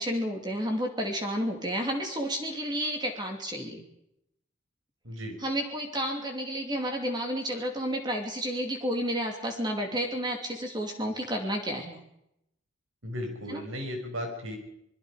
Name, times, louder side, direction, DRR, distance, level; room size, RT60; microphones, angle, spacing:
voice 1, 0.0-3.8 5.4-12.0 13.5-13.6, equal, 20° right, 3 dB, 2.8 m, -31 dB
voice 2, 5.0-5.3 13.0-14.6, equal, 75° right, 3 dB, 5.9 m, -35 dB
27.5 x 21.5 x 5.1 m, 0.78 s
head